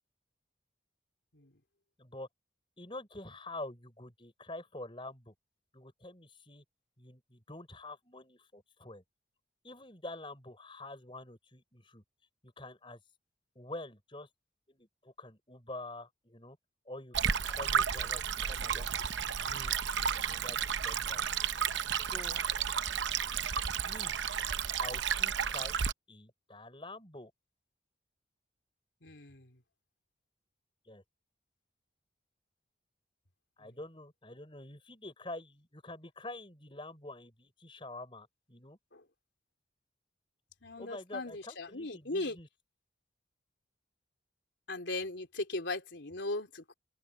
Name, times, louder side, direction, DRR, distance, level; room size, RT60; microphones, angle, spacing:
voice 1, 2.8-5.3 5.7-6.6 7.0-9.0 9.6-12.0 12.4-13.0 13.5-14.3 14.7-16.6 16.9-18.9 19.2-19.8 20.1-21.3 21.9-22.4 23.8-24.2 24.8-25.8 26.1-27.3 30.8-31.0 33.6-38.8 40.8-42.5, left 2 dB, 30° left, 6.3 m, -47 dB
Stream, 17.1-25.9, right 7 dB, 80° right, 0.8 m, -32 dB
voice 2, 29.0-29.5 38.9-39.0 40.6-42.4 44.7-46.7, left 2 dB, 75° left, 3.3 m, -38 dB
open air
head